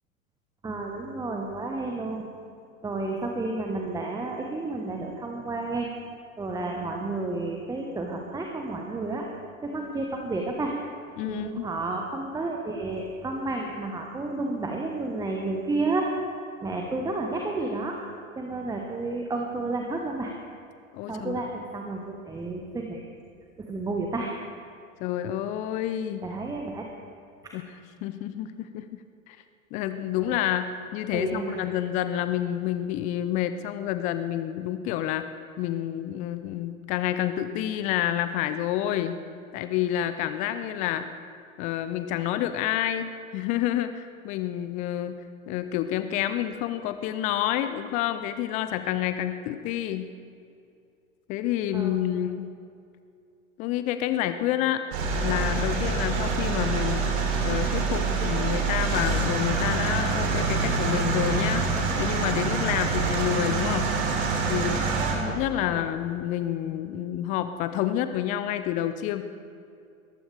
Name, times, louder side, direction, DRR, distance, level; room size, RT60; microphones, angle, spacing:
voice 1, 0.6-2.3 2.8-5.9 6.4-9.3 9.6-10.7 11.2-16.1 16.6-18.0 18.3-20.3 21.1-23.0 23.6-24.3 26.2-26.9 27.4-27.5 30.2-30.4 31.1-31.6 51.7-52.0 65.1-65.4 65.6-65.8, right 2 dB, 10° right, 1 dB, 1.2 m, -31 dB
voice 2, 11.2-11.7 20.9-21.4 25.0-26.2 27.5-27.6 28.0-28.9 29.3-29.4 29.7-35.2 35.6-39.2 39.5-41.1 41.6-45.2 45.5-50.1 51.3-52.5 53.6-54.8 55.2-57.1 57.4-61.6 62.0-63.9 64.5-65.0 65.3-69.2, left 11 dB, 20° left, 11 dB, 0.4 m, -28 dB
sound 1, 54.9-65.1, right 4 dB, 50° right, 3.3 m, -26 dB
21.0 x 15.0 x 3.4 m, 2.5 s
figure-of-eight pair, 90°, 42 cm